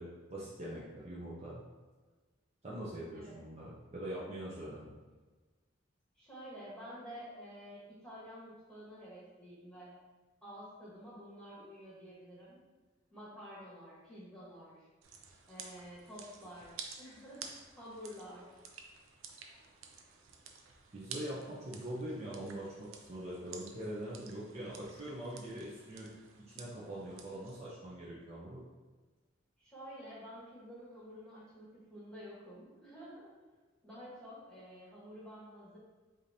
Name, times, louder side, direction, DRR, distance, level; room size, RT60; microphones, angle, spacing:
voice 1, 0.0-1.6 2.6-5.0 20.9-26.1 26.5-28.6, right 1 dB, 35° right, -7 dB, 0.6 m, -43 dB
voice 2, 6.1-9.9 10.4-12.6 13.1-14.9 15.5-17.4 17.7-18.6 29.6-33.3 33.8-35.8, equal, 5° left, -8 dB, 1.2 m, -50 dB
sound 1, 15.0-27.6, right 6 dB, 90° right, 0.5 m, -52 dB
4.9 x 2.7 x 2.7 m, 1.3 s
head